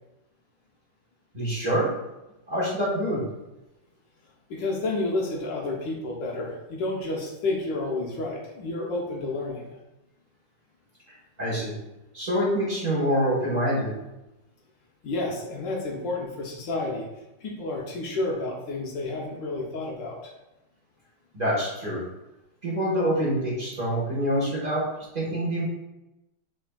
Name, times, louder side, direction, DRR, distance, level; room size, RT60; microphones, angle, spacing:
voice 1, 1.3-1.9 2.5-3.2 11.4-11.7 12.1-13.9 21.3-22.0 22.6-24.8 25.1-25.7, equal, 40° right, -8 dB, 0.6 m, -26 dB
voice 2, 4.5-9.7 15.0-17.1 17.4-20.3, left 2 dB, 70° left, -1 dB, 1.2 m, -30 dB
4.8 x 3.3 x 2.2 m, 0.97 s
omnidirectional pair, 2.4 m